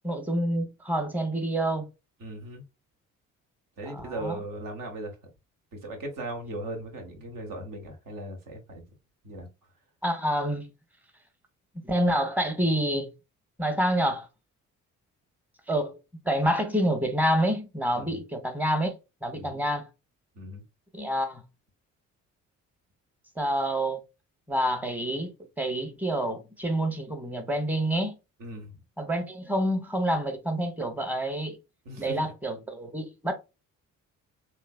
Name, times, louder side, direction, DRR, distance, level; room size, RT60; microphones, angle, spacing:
voice 1, 0.0-1.9 3.9-4.4 10.0-10.7 11.8-13.1 13.6-14.3 15.7-16.0 16.2-18.9 19.2-19.9 20.9-21.4 23.4-24.0 24.5-28.1 29.0-31.6 32.0-33.3, right 1 dB, 5° right, 1.0 m, -27 dB
voice 2, 2.2-2.6 3.8-5.1 5.7-8.8 9.2-9.5 17.9-18.2 19.3-19.6 20.3-20.6 28.4-28.7 31.8-32.3, right 1 dB, 55° right, 1.3 m, -38 dB
3.2 x 3.1 x 2.3 m
figure-of-eight pair, 45°, 40 cm